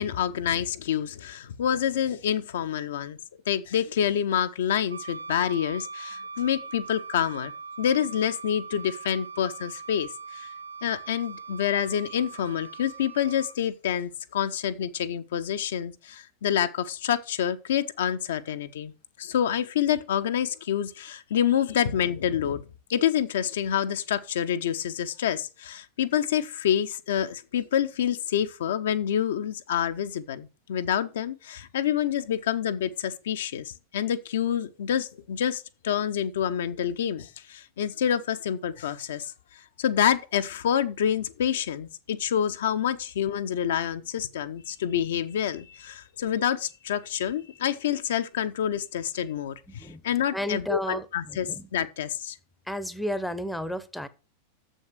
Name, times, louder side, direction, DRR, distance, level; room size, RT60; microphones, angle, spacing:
voice 1, 0.0-3.2 3.5-7.5 7.8-10.5 10.8-18.9 19.2-22.6 22.9-39.3 39.8-52.4, left 9 dB, 60° left, 0.6 m, -27 dB
Wind instrument woodwind instrument, 4.9-13.6, right 4 dB, 80° right, 0.4 m, -41 dB
voice 2, 49.7-50.0 50.3-51.7 52.7-54.1, equal, ahead, 0.7 m, -32 dB
7.1 x 6.3 x 6.3 m
figure-of-eight pair, 90°, 0 cm